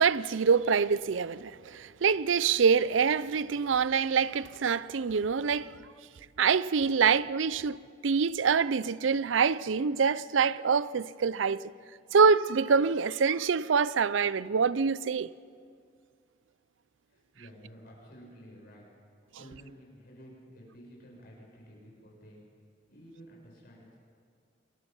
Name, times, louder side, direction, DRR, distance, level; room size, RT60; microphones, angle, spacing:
voice 1, 0.0-5.7 6.4-11.6 12.1-15.3, right 5 dB, 85° right, 0.5 m, -25 dB
voice 2, 17.1-22.4 22.9-24.0, equal, 55° left, 7.8 m, -52 dB
28.0 x 21.0 x 5.5 m
head